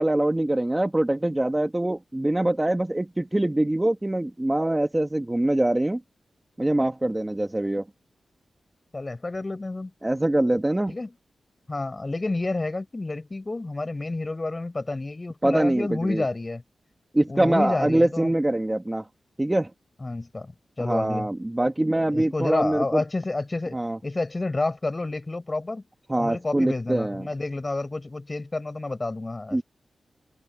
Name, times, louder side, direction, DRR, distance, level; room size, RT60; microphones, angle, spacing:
voice 1, 0.0-6.0 6.6-7.8 10.0-10.9 15.4-16.2 17.1-19.0 19.4-19.7 20.8-23.0 23.7-24.0 26.1-27.3 29.5-29.6, right 1 dB, 15° right, 1.9 m, -24 dB
voice 2, 8.9-9.9 10.9-11.1 11.7-16.6 17.3-18.3 20.0-20.5 20.8-21.3 22.1-23.8 24.0-25.8 26.2-29.6, left 2 dB, 25° left, 5.9 m, -29 dB
open air
wide cardioid pair, 120°, 0 cm